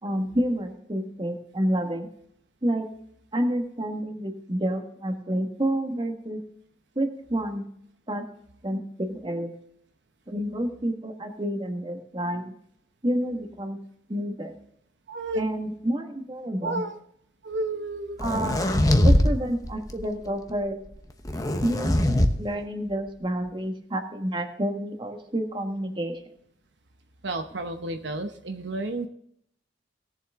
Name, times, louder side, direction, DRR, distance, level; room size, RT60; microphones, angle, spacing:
voice 1, 0.0-2.1 2.6-2.9 3.3-6.4 6.9-7.6 8.1-8.3 8.6-9.5 10.3-12.5 13.0-13.8 14.1-14.5 15.3-16.8 18.2-20.8 21.6-26.2, right 1 dB, 25° right, 5 dB, 1.5 m, -29 dB
voice 2, 15.1-15.4 16.6-17.0 17.4-18.2 27.2-29.1, right 2 dB, 70° right, 6 dB, 0.9 m, -31 dB
sound 1, 18.2-19.3 19.6-20.0 21.2-22.3, left 1 dB, 20° left, 1.0 m, -21 dB
18.5 x 7.2 x 3.6 m, 0.71 s
head